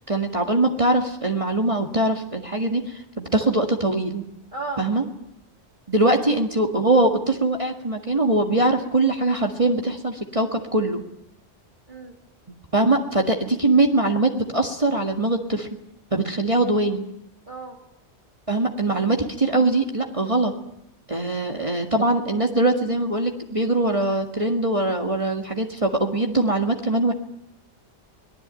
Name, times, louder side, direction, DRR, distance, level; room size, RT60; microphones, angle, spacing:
voice 1, 0.0-4.3 4.8-5.0 5.9-11.0 12.7-15.7 16.1-17.0 18.5-20.5 21.1-27.1, right 2 dB, 30° right, 3 dB, 1.9 m, -22 dB
voice 2, 4.5-4.9 11.9-12.2 17.5-17.8, right 3 dB, 45° right, 0 dB, 2.8 m, -34 dB
24.0 x 19.0 x 9.0 m, 0.76 s
omnidirectional pair, 1.2 m